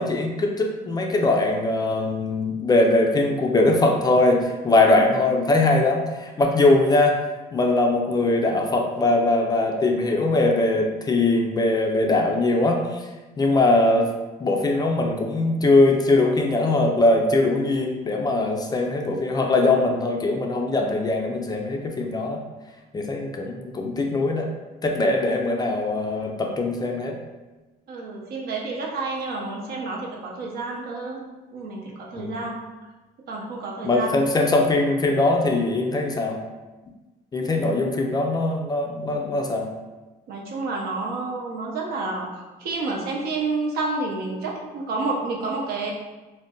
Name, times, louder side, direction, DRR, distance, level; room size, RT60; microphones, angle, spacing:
voice 1, 0.0-7.2 7.5-13.0 13.4-14.1 14.4-22.4 22.9-24.5 24.8-27.2 32.1-32.4 33.8-36.4 37.3-39.7, left 2 dB, 25° left, 1 dB, 0.3 m, -21 dB
voice 2, 27.9-31.2 31.5-32.6 33.3-34.2 40.3-42.3 42.6-45.9, right 3 dB, 65° right, -1 dB, 0.7 m, -29 dB
2.5 x 2.1 x 3.6 m, 1.2 s
cardioid pair, 110°, 17 cm